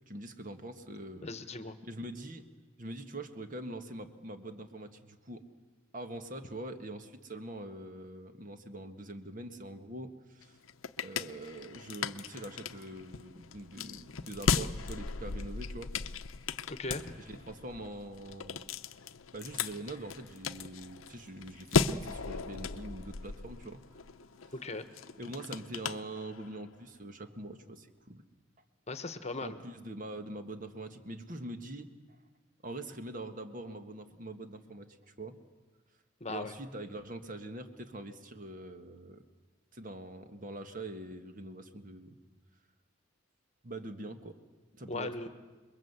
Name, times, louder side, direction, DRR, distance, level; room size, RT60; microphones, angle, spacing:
voice 1, 0.1-1.3 1.8-2.4 2.8-5.4 5.9-10.6 11.0-15.9 17.2-18.6 19.3-23.8 25.2-28.2 29.4-31.9 32.6-34.9 35.2-35.4 36.3-39.2 39.7-42.2 43.6-44.4 44.8-45.3, right 1 dB, 40° right, 7 dB, 1.7 m, -43 dB
voice 2, 1.2-1.8 16.7-17.1 24.5-24.8 28.9-29.6 36.2-36.5 44.9-45.3, left 2 dB, 35° left, 10 dB, 1.2 m, -38 dB
sound 1, 10.4-26.7, left 5 dB, 85° left, 0.8 m, -37 dB
28.0 x 22.0 x 8.1 m, 1.3 s
head